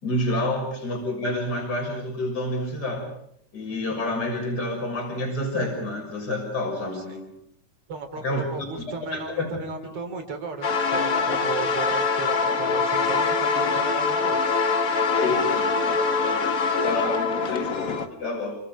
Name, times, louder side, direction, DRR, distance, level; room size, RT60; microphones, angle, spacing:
voice 1, 0.0-3.1 3.5-7.4 8.2-8.4 9.1-9.5 15.1-16.5 16.8-18.6, left 1 dB, 30° left, 1 dB, 6.8 m, -29 dB
voice 2, 7.9-14.4, right 5 dB, 50° right, 5 dB, 4.5 m, -35 dB
sound 1, 10.6-18.1, left 4 dB, 45° left, 1.1 m, -24 dB
29.5 x 26.0 x 5.1 m, 0.71 s
omnidirectional pair, 3.7 m